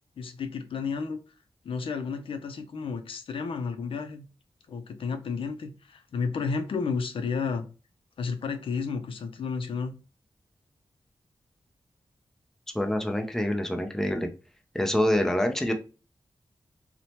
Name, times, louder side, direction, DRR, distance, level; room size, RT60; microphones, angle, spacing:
voice 1, 0.2-1.2 1.6-4.3 4.7-7.7 8.2-10.0, left 5 dB, 80° left, 7 dB, 0.4 m, -32 dB
voice 2, 12.7-14.3 14.7-15.7, left 1 dB, 5° left, 5 dB, 0.5 m, -26 dB
2.7 x 2.1 x 3.0 m, 0.33 s
wide cardioid pair, 75°, 9 cm